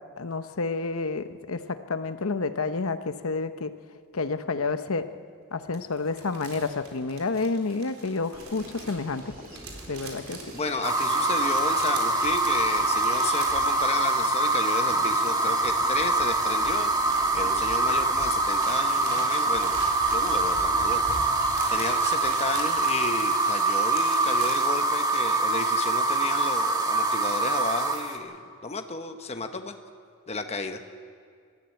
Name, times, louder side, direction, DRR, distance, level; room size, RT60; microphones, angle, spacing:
voice 1, 0.2-3.7 4.1-5.0 5.5-9.3 9.9-10.4, left 3 dB, 75° left, 10 dB, 0.9 m, -29 dB
sound 1, 5.7-14.4 14.7-18.0 18.3-24.6, right 4 dB, 80° right, 3.8 m, -44 dB
sound 2, 8.3-21.8, equal, 45° right, 3.0 m, -44 dB
voice 2, 10.5-21.2 21.7-29.7 30.3-30.8, left 3 dB, 30° left, 6 dB, 1.1 m, -33 dB
sound 3, 10.8-28.2, right 2 dB, 20° right, 1.6 m, -24 dB
22.0 x 13.5 x 9.1 m, 2.1 s
head